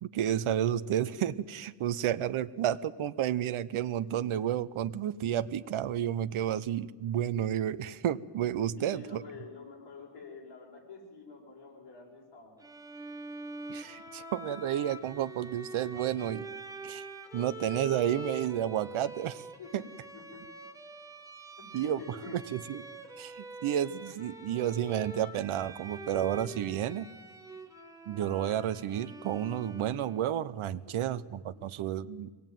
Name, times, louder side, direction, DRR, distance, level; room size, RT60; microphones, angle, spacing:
voice 1, 0.0-9.2 13.7-16.5 16.8-17.0 17.3-19.4 19.7-19.8 21.7-22.8 23.2-27.1 28.1-32.3, right 10 dB, 80° right, 13 dB, 0.9 m, -31 dB
voice 2, 8.8-12.6 19.6-20.7 21.6-22.3, left 4 dB, 60° left, -2 dB, 6.3 m, -48 dB
Bowed string instrument, 12.6-30.4, right 2 dB, 5° right, 1.7 m, -45 dB
23.5 x 18.5 x 9.2 m, 1.3 s
wide cardioid pair, 155°, 49 cm